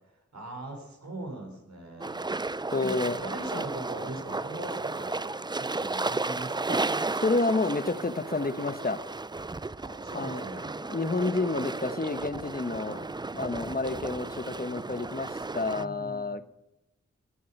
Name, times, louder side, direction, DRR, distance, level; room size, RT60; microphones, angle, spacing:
voice 1, 0.3-2.3 2.7-5.2 5.6-6.9 9.8-10.7 12.8-13.0 15.7-16.4, right 2 dB, 70° right, 3 dB, 4.4 m, -40 dB
sound 1, 2.0-15.8, right 3 dB, 15° right, 0.4 m, -34 dB
voice 2, 2.7-3.2 3.5-3.6 6.7-6.8 7.1-9.0 10.1-10.4 10.9-13.0 13.3-16.4, left 3 dB, 30° left, 11 dB, 1.1 m, -29 dB
19.5 x 8.5 x 5.9 m, 0.90 s
cardioid pair, 45°, 29 cm